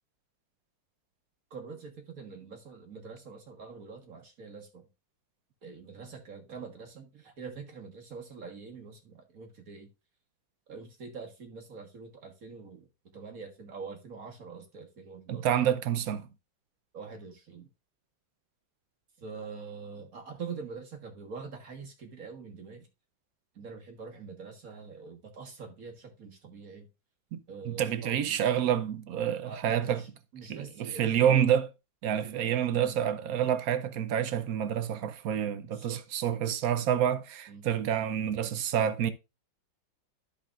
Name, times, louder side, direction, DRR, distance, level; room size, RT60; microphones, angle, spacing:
voice 1, 1.5-4.9 5.6-9.9 10.7-12.9 13.1-15.5 16.9-17.7 19.2-22.9 23.5-26.9 27.5-28.4 29.4-30.1 30.3-31.5 32.2-32.4 32.8-33.0 35.6-36.0 37.5-37.7, right 5 dB, 50° right, 1.7 m, -44 dB
voice 2, 15.3-16.3 27.3-27.4 27.7-30.0 30.5-31.7 32.0-39.1, right 9 dB, 70° right, 0.9 m, -28 dB
13.0 x 5.0 x 2.4 m
omnidirectional pair, 2.1 m